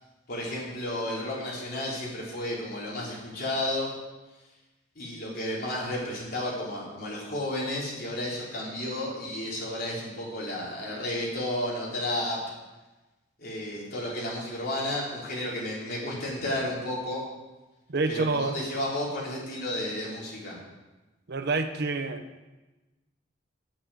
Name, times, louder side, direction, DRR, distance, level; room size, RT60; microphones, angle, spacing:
voice 1, 0.3-3.9 5.0-12.4 13.4-17.2 18.1-20.6, left 1 dB, 50° left, -5 dB, 4.1 m, -32 dB
voice 2, 17.9-18.6 21.3-22.2, right 3 dB, 60° right, 8 dB, 0.8 m, -27 dB
8.6 x 8.5 x 7.9 m, 1.1 s
head